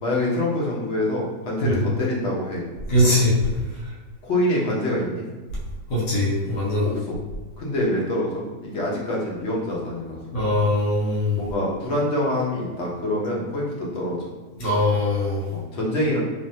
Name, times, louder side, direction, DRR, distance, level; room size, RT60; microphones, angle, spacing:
voice 1, 0.0-2.6 4.2-5.2 6.8-7.2 7.6-10.2 11.4-14.3 15.5-16.2, left 1 dB, 55° left, -4 dB, 0.8 m, -25 dB
voice 2, 2.9-3.3 5.9-7.0 10.3-11.4 14.6-15.4, left 1 dB, 75° left, -6 dB, 1.7 m, -21 dB
3.3 x 2.5 x 2.7 m, 1.3 s
omnidirectional pair, 1.9 m